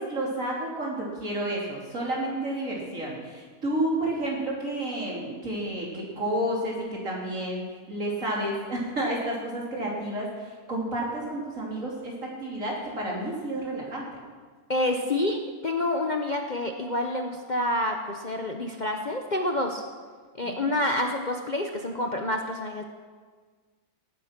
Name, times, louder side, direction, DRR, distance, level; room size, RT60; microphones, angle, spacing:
voice 1, 0.0-14.1 20.4-20.8, right 1 dB, 60° right, -3 dB, 3.8 m, -31 dB
voice 2, 14.7-19.8 20.3-22.8, left 1 dB, 35° left, 3 dB, 0.9 m, -28 dB
18.0 x 9.5 x 6.0 m, 1.5 s
omnidirectional pair, 1.6 m